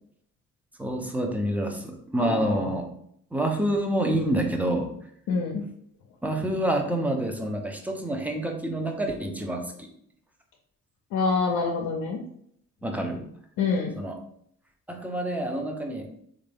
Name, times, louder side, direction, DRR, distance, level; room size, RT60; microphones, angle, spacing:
voice 1, 0.8-2.9 3.3-4.9 6.2-9.9 12.8-13.3 14.0-14.2 14.9-16.2, right 1 dB, 5° right, 3 dB, 0.6 m, -27 dB
voice 2, 2.2-2.7 5.3-5.6 11.1-12.2 13.6-13.9, left 4 dB, 85° left, 0 dB, 0.6 m, -26 dB
3.6 x 2.6 x 3.4 m, 0.68 s
cardioid pair, 90°, 30 cm